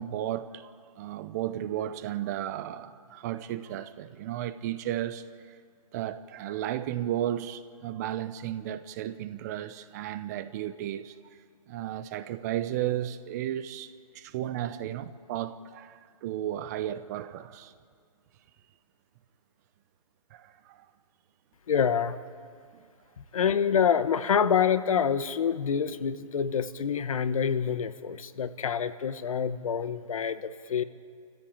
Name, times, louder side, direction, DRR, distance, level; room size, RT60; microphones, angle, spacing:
voice 1, 0.0-5.2 5.9-11.2 11.7-17.7 20.3-20.8, right 12 dB, 25° right, 0.8 m, -34 dB
voice 2, 21.7-22.2 23.3-30.8, left 7 dB, 60° left, 1.3 m, -26 dB
28.0 x 15.0 x 8.8 m
hypercardioid pair, 145°, 20 cm